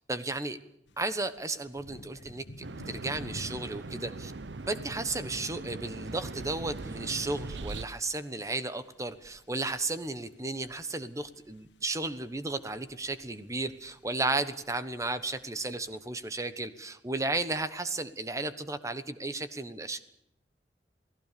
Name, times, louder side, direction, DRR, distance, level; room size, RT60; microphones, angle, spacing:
voice 1, 0.1-0.6 1.0-4.3 4.7-20.0, right 2 dB, 20° right, 11 dB, 1.2 m, -34 dB
sound 1, 0.9-16.2, left 1 dB, 90° left, 1.8 m, -54 dB
sound 2, 2.6-7.9, right 3 dB, 80° right, 0.8 m, -40 dB
28.0 x 17.5 x 6.9 m, 0.77 s
head